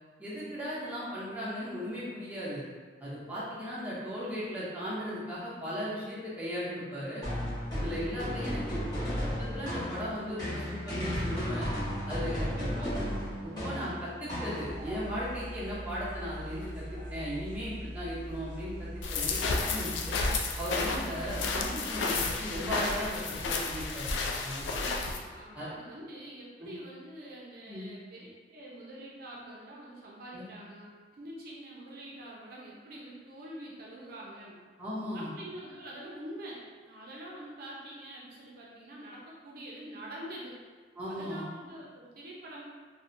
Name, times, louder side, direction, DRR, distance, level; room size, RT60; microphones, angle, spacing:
voice 1, 0.2-2.6 3.0-7.2 7.7-11.7 12.1-12.9 13.4-20.2 20.6-24.1 24.4-24.6 25.5-25.7 26.6-26.7 27.7-27.9 30.3-30.5 34.8-35.3 41.0-41.4, equal, 10° right, -9 dB, 0.6 m, -37 dB
sound 1, 7.2-15.0, equal, 25° left, 0.9 m, -34 dB
voice 2, 12.4-12.9 24.7-30.9 31.1-34.6 35.1-40.6 41.1-42.6, right 1 dB, 55° right, -4 dB, 0.5 m, -45 dB
sound 2, 14.6-21.8, equal, 45° left, 1.2 m, -41 dB
sound 3, 19.0-25.2, left 3 dB, 90° left, 0.3 m, -32 dB
2.7 x 2.1 x 2.5 m, 1.5 s
head